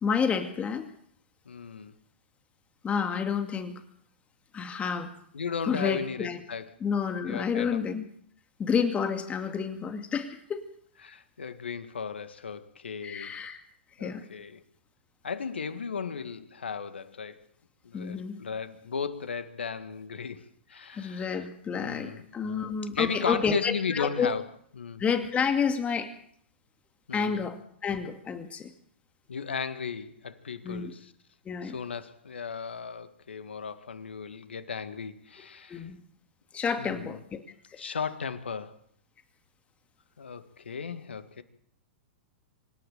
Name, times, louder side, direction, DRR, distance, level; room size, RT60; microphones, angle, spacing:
voice 1, 0.0-0.9 2.8-3.8 4.5-5.1 5.7-6.4 6.8-8.1 8.6-10.6 13.0-13.6 14.0-14.2 17.9-18.4 21.0-24.3 25.0-26.1 27.1-28.7 30.6-30.9 31.5-31.8 35.7-36.0 36.5-37.4, left 6 dB, 20° left, 7 dB, 2.2 m, -29 dB
voice 2, 1.5-1.9 5.3-6.7 7.2-7.8 11.0-13.3 14.0-14.6 15.2-17.4 17.8-21.4 21.7-24.4 24.8-25.0 27.1-27.5 29.3-31.1 31.6-35.9 36.8-37.2 37.8-38.8 40.2-41.4, left 6 dB, 80° left, 12 dB, 1.9 m, -36 dB
25.5 x 11.5 x 8.9 m, 0.62 s
hypercardioid pair, 105°, 6 cm